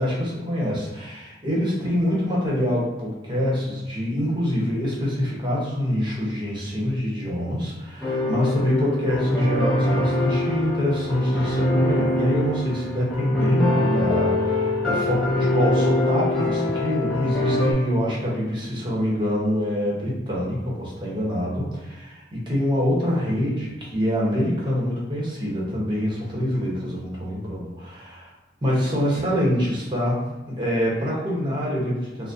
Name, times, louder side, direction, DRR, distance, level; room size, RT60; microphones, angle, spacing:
voice 1, 0.0-28.3 28.6-32.3, equal, 25° right, -5 dB, 0.9 m, -25 dB
sound 1, 8.0-17.7, left 1 dB, ahead, 0.7 m, -23 dB
3.9 x 2.1 x 2.5 m, 1.1 s
head